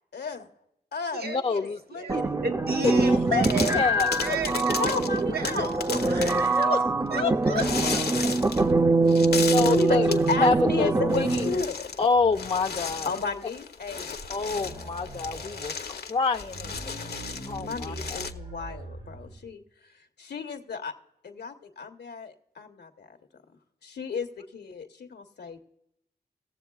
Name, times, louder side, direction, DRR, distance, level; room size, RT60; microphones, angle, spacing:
voice 1, 0.1-0.5 0.9-2.4 3.6-3.7 4.7-5.7 6.0-6.1 6.5-6.7 9.6-11.9 13.0-14.1 15.0-15.1 17.6-20.9 21.2-23.2 23.8-25.6, left 5 dB, 85° left, 1.0 m, -34 dB
voice 2, 1.2-1.8 3.0-3.4 3.7-4.1 6.6-6.8 7.1-7.6 9.4-10.1 10.4-11.5 12.0-13.1 14.3-15.7 16.1-17.0 17.5-18.2, left 4 dB, 35° left, 0.5 m, -27 dB
voice 3, 1.9-3.9 4.1-6.8 7.1-8.7, right 4 dB, 70° right, 1.1 m, -34 dB
sound 1, 2.1-11.6, right 3 dB, 20° right, 0.5 m, -24 dB
sound 2, 2.8-3.1 3.4-6.6 7.6-8.7 9.1-10.3 11.1-12.1 12.3-18.3, left 6 dB, 70° left, 0.7 m, -35 dB
sound 3, 12.0-13.5 13.8-13.9 14.2-15.7 16.3-19.5, right 2 dB, 85° right, 1.7 m, -42 dB
18.0 x 7.4 x 2.3 m
cardioid pair, 70°, 17 cm